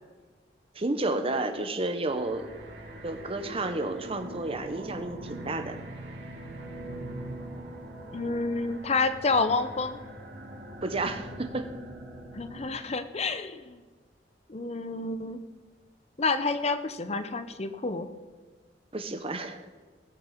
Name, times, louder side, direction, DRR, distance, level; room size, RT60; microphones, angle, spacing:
voice 1, 0.7-2.5 3.0-5.8 10.8-11.7 18.9-19.6, right 2 dB, 35° right, 8 dB, 1.0 m, -31 dB
sound 1, 2.0-12.8, right 1 dB, 70° right, 2.3 m, -42 dB
voice 2, 8.1-10.0 12.3-13.8 14.5-15.4 16.2-18.1, left 3 dB, 40° left, 11 dB, 0.8 m, -29 dB
18.0 x 6.7 x 5.9 m, 1.4 s
head